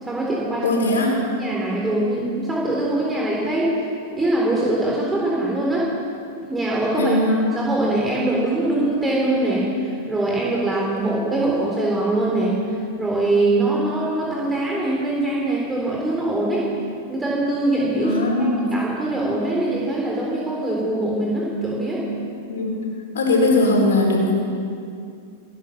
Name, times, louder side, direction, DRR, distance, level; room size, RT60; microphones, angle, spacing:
voice 1, 0.0-0.8 1.4-3.8 4.1-5.9 6.5-12.6 13.0-16.7 17.1-18.2 18.7-22.0, right 2 dB, 10° right, -4 dB, 3.6 m, -22 dB
voice 2, 0.6-1.3 7.0-7.4 18.0-18.7 22.5-22.8 23.1-24.3, left 2 dB, 80° left, -1 dB, 4.5 m, -20 dB
18.0 x 10.5 x 7.2 m, 2.4 s
hypercardioid pair, 115°, 0 cm